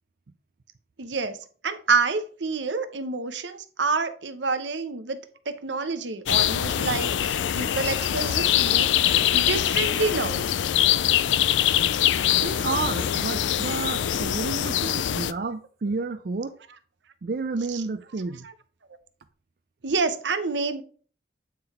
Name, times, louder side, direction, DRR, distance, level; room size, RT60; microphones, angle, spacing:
voice 1, 1.0-1.4 1.6-5.2 5.5-10.5 15.1-15.2 17.7-17.8 18.4-18.5 19.8-20.8, right 4 dB, 80° right, 0.8 m, -28 dB
sound 1, 6.3-15.3, left 11 dB, 90° left, 0.4 m, -23 dB
voice 2, 12.4-16.6 17.2-18.5, right 4 dB, 55° right, 0.4 m, -30 dB
8.7 x 3.9 x 4.3 m
head